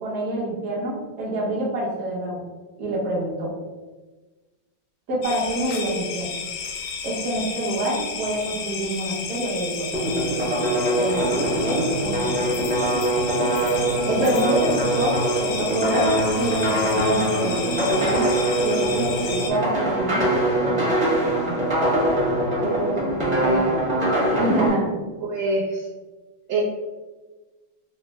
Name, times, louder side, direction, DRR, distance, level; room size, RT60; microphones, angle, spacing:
voice 1, 0.0-2.4 2.8-3.5 5.1-6.3 7.0-10.5 11.0-11.3 11.6-12.6 14.0-17.6 17.9-20.3 20.6-21.0 24.4-24.9, right 1 dB, 55° right, -4 dB, 1.1 m, -27 dB
sound 1, 5.2-19.5, left 6 dB, 90° left, 1.5 m, -32 dB
sound 2, 9.9-24.7, right 1 dB, 20° right, 0.7 m, -23 dB
voice 2, 22.8-24.0 24.4-24.5 25.2-25.9 26.5-26.6, right 2 dB, 75° right, -6 dB, 0.9 m, -26 dB
4.1 x 2.0 x 3.3 m, 1.2 s
omnidirectional pair, 2.4 m